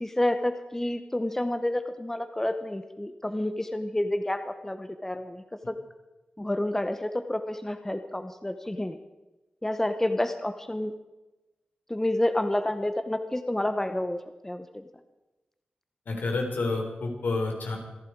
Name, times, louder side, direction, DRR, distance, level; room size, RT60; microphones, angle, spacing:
voice 1, 0.0-5.8 6.4-9.0 9.6-10.9 11.9-14.2 14.4-14.8, left 1 dB, 10° left, 9 dB, 0.9 m, -29 dB
voice 2, 16.1-17.8, left 3 dB, 75° left, 2 dB, 3.8 m, -29 dB
26.5 x 11.0 x 4.6 m, 1.1 s
wide cardioid pair, 90°, 3 cm